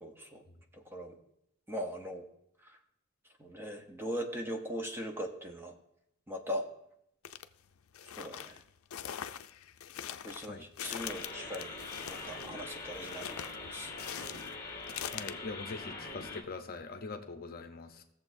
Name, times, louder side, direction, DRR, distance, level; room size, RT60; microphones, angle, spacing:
voice 1, 0.0-0.4 0.7-1.2 1.7-2.3 2.7-2.8 3.4-5.7 6.3-6.7 8.2-8.6 10.2-11.8 12.1-13.9, equal, 10° right, 3 dB, 0.8 m, -40 dB
sound 1, 7.2-7.4 7.9-15.3, left 10 dB, 75° left, 0.4 m, -43 dB
sound 2, 11.0-16.4, left 3 dB, 15° left, 1.7 m, -43 dB
voice 2, 15.1-18.0, left 3 dB, 45° left, 6 dB, 0.8 m, -43 dB
16.5 x 7.0 x 2.6 m, 0.78 s
head